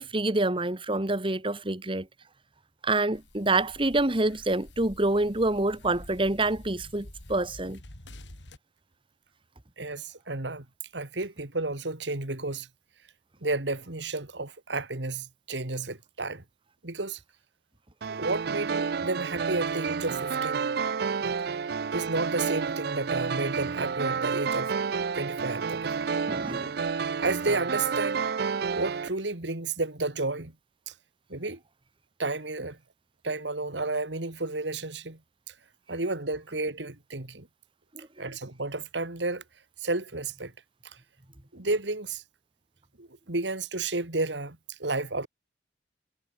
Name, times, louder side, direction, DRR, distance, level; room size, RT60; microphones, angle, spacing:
voice 1, 0.0-2.1 2.8-7.8 26.3-26.8, right 2 dB, 30° right, 1.8 m, -27 dB
sound 1, 3.1-8.6, left 1 dB, 85° left, 4.1 m, -48 dB
voice 2, 9.8-10.7 10.9-12.7 13.4-16.4 16.8-17.2 18.1-20.7 21.2-21.3 21.9-24.8 25.1-26.1 26.6-26.7 27.1-28.2 28.7-30.5 30.9-31.0 31.3-31.6 32.2-32.8 33.2-35.2 35.5-35.6 35.9-37.5 38.2-39.4 39.8-40.5 40.8-41.0 41.5-42.2 43.0-45.3, right 2 dB, 80° right, 2.5 m, -32 dB
sound 2, 18.0-29.1, right 5 dB, 60° right, 0.5 m, -30 dB
head